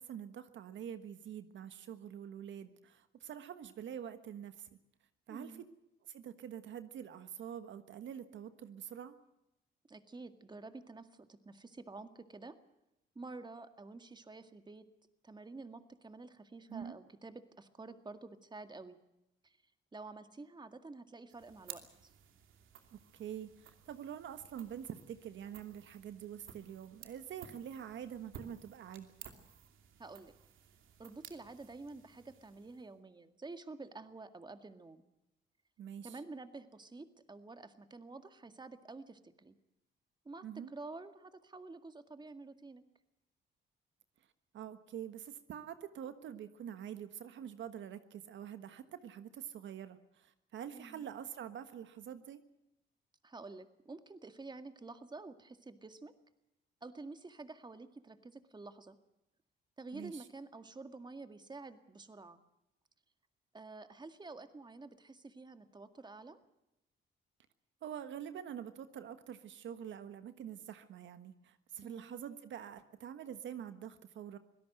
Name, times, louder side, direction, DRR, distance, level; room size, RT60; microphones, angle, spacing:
voice 1, 0.0-4.7 5.3-5.7 6.1-9.1 16.7-17.0 22.9-29.1 35.8-36.2 40.4-40.7 44.5-52.4 59.9-60.2 67.8-74.4, right 9 dB, 70° right, 10 dB, 1.4 m, -46 dB
voice 2, 5.3-5.6 9.9-12.6 13.2-14.9 15.2-19.0 19.4-19.6 19.9-22.1 30.0-30.3 31.0-35.0 36.0-39.5 40.3-42.8 50.7-51.0 53.2-56.1 56.8-59.0 59.8-62.4 63.5-66.4 71.8-72.2, right 3 dB, 20° right, 9 dB, 2.0 m, -49 dB
sound 1, 21.3-33.0, right 9 dB, 85° right, 2.7 m, -56 dB
25.0 x 17.5 x 7.8 m, 0.87 s
cardioid pair, 90°, 20 cm